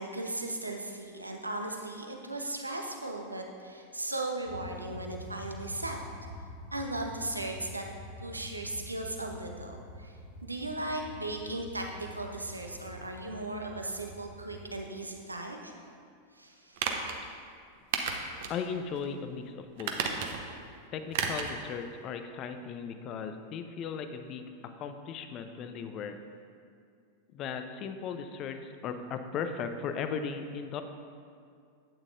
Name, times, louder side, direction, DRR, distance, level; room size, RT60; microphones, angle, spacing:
voice 1, 0.0-6.0 6.7-7.8 8.2-10.1 10.4-15.9 16.4-16.9, right 2 dB, 80° right, 3 dB, 0.9 m, -37 dB
sound 1, 4.4-14.8, left 1 dB, 60° left, 0.9 m, -46 dB
sound 2, 16.8-17.2 17.9-18.6 19.0-19.1 19.8-20.5 21.1-21.5 21.9-22.0, right 6 dB, 50° right, 0.9 m, -32 dB
voice 2, 18.5-20.0 20.9-26.2 27.3-30.8, left 6 dB, 35° left, 8 dB, 0.6 m, -37 dB
11.5 x 8.9 x 2.6 m, 2.3 s
figure-of-eight pair, 90°, 0 cm